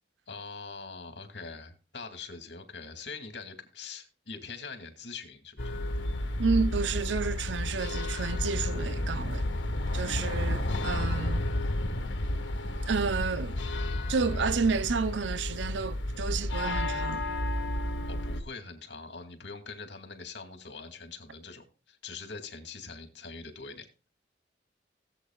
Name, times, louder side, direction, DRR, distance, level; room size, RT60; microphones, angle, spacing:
voice 1, 0.3-5.8 18.1-23.9, left 4 dB, 70° left, 2.2 m, -43 dB
sound 1, 5.6-18.4, left 1 dB, 85° left, 1.5 m, -31 dB
voice 2, 6.4-9.4 9.9-11.5 12.9-13.6 14.1-17.2, right 5 dB, 85° right, 0.6 m, -30 dB
17.0 x 8.2 x 2.4 m
head